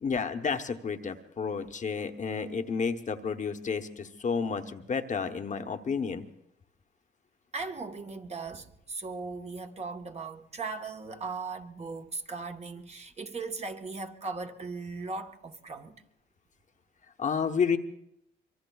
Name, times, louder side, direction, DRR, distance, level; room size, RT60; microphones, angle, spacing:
voice 1, 0.0-6.3 17.2-17.8, left 5 dB, 40° left, 0.9 m, -31 dB
voice 2, 7.5-16.0, right 4 dB, 35° right, 1.1 m, -38 dB
25.5 x 23.0 x 2.3 m
cardioid pair, 90°, 20 cm